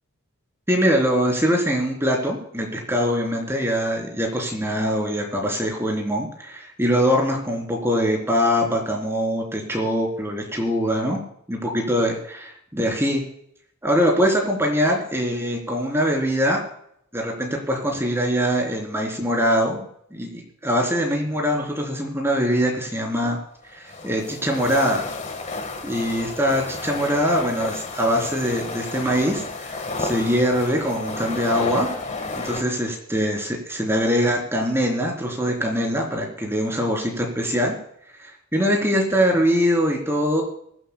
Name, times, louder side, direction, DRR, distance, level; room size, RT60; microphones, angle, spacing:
voice 1, 0.7-11.2 11.5-13.2 13.8-16.6 17.1-19.8 20.1-23.4 23.7-25.0 25.8-31.9 32.4-37.8 38.2-40.4, equal, 10° right, 0 dB, 3.8 m, -23 dB
sound 1, 23.6-32.6, left 3 dB, 35° left, 1.7 m, -32 dB
24.0 x 11.5 x 2.3 m, 0.70 s
head